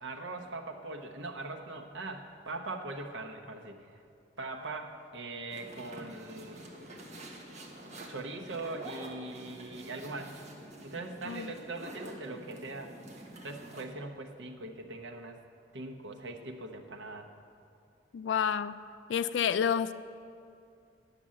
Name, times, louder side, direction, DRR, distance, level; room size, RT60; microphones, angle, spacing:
voice 1, 0.0-3.9 4.4-6.7 8.1-10.4 10.8-12.9 13.4-15.4 15.7-17.3, right 2 dB, 80° right, 3 dB, 1.0 m, -41 dB
sound 1, 5.5-13.8, right 1 dB, 40° right, 1.3 m, -47 dB
voice 2, 18.1-18.8 19.1-19.9, left 8 dB, 70° left, 13 dB, 0.3 m, -29 dB
9.9 x 6.9 x 7.5 m, 2.5 s
head